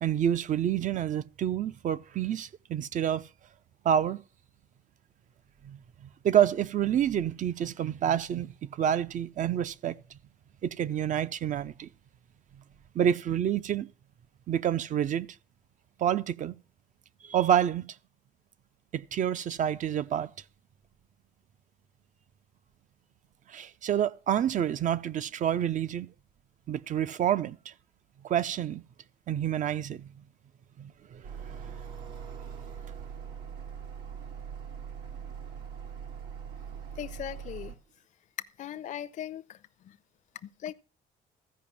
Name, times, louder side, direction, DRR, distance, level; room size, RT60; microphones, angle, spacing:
voice 1, 0.0-3.2 3.8-4.2 5.6-10.0 10.6-11.9 12.9-13.9 14.5-15.3 16.0-16.5 17.2-17.8 18.9-20.3 23.5-26.1 26.7-27.7 28.2-28.8 29.3-30.1 30.8-31.2 31.5-31.6, right 9 dB, 50° right, 0.7 m, -28 dB
sound 1, 31.2-37.8, right 7 dB, 85° right, 2.5 m, -41 dB
voice 2, 37.0-37.8 38.6-39.6 39.8-40.0 40.4-40.7, left 10 dB, 50° left, 0.6 m, -39 dB
14.5 x 5.2 x 8.6 m
cardioid pair, 110°, 17 cm